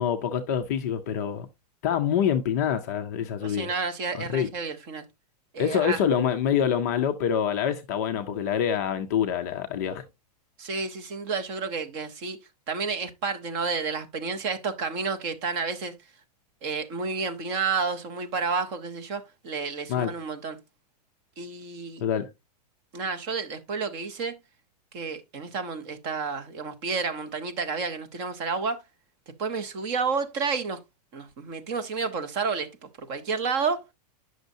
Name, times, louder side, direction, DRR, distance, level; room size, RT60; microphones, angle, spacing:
voice 1, 0.0-1.5 1.8-3.7 4.1-4.5 5.6-10.0 19.9-20.1 22.0-22.3, left 8 dB, 25° left, 0.4 m, -26 dB
voice 2, 3.4-5.0 5.5-6.0 10.6-12.4 12.7-15.9 16.6-20.6 21.4-22.0 22.9-24.4 24.9-28.8 29.4-30.8 31.1-33.8, right 5 dB, 20° right, 0.6 m, -30 dB
9.2 x 6.2 x 2.6 m
supercardioid pair, 180°, 21 cm